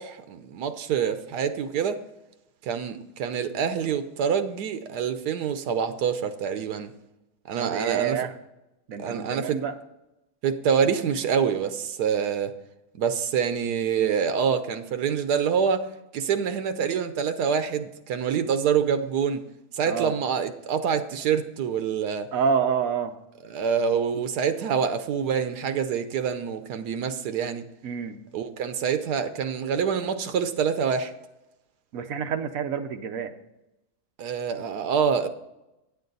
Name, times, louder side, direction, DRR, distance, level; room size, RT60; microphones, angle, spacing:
voice 1, 0.0-2.0 2.6-6.9 7.5-8.2 9.0-9.6 10.4-12.5 12.9-15.9 16.1-19.4 19.7-22.3 23.4-27.7 28.3-31.1 34.2-35.3, right 7 dB, 80° right, 10 dB, 1.3 m, -26 dB
voice 2, 7.6-8.3 8.9-9.7 19.9-20.1 22.3-23.1 27.8-28.2 31.9-33.3, right 6 dB, 65° right, 7 dB, 1.1 m, -27 dB
9.3 x 8.8 x 4.0 m, 0.92 s
omnidirectional pair, 1.7 m